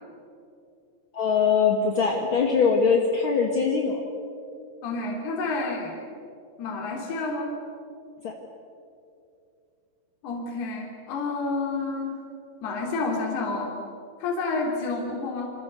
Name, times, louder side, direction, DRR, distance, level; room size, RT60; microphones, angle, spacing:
voice 1, 1.1-4.0 8.2-8.3, left 5 dB, 50° left, 1 dB, 1.5 m, -22 dB
voice 2, 4.8-5.9 6.6-7.5 10.2-12.2 12.6-13.8 14.2-15.5, left 3 dB, 65° left, 0 dB, 5.1 m, -29 dB
28.0 x 25.5 x 6.9 m, 2.6 s
omnidirectional pair, 5.0 m